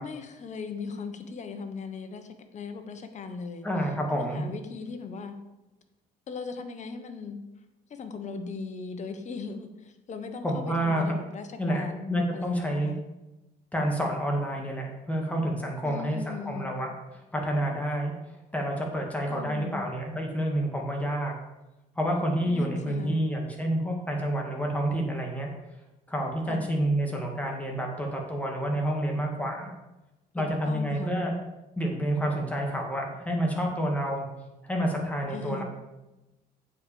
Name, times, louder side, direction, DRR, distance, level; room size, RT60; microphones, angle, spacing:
voice 1, 0.0-3.7 4.1-5.3 6.3-7.4 7.9-13.0 15.8-16.8 19.3-19.8 22.5-23.2 26.5-26.6 30.4-31.2 35.3-35.6, left 4 dB, 45° left, 7 dB, 1.2 m, -38 dB
voice 2, 3.6-4.5 10.4-11.1 11.6-12.9 13.7-18.1 18.5-21.3 22.0-25.5 26.1-29.7 30.3-31.3 31.8-34.3 34.6-35.6, right 1 dB, 10° left, 0 dB, 2.1 m, -29 dB
8.3 x 4.8 x 7.0 m, 1.0 s
cardioid pair, 110°, 17 cm